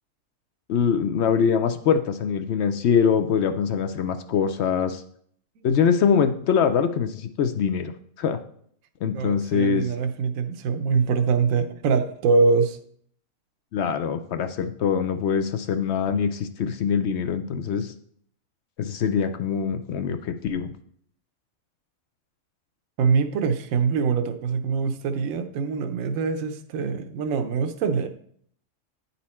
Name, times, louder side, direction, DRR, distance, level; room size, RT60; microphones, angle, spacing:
voice 1, 0.7-5.0 5.6-7.9 8.2-8.4 9.0-9.9 13.7-17.9 18.8-20.7, left 7 dB, 65° left, 9 dB, 0.7 m, -23 dB
voice 2, 9.1-12.8 23.0-28.1, right 5 dB, 70° right, 8 dB, 1.0 m, -24 dB
9.7 x 4.2 x 4.2 m, 0.63 s
omnidirectional pair, 1.5 m